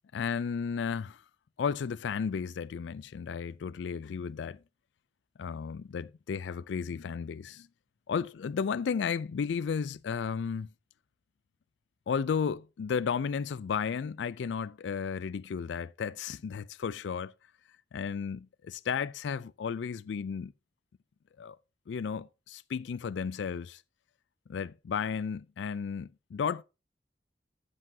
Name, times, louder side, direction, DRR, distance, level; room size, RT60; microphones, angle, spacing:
voice 1, 0.1-1.2 1.6-4.6 5.4-7.7 8.1-10.7 12.1-17.3 17.9-20.5 21.4-21.6 21.9-23.8 24.5-26.6, left 6 dB, 90° left, 0.4 m, -33 dB
12.0 x 8.0 x 2.7 m
head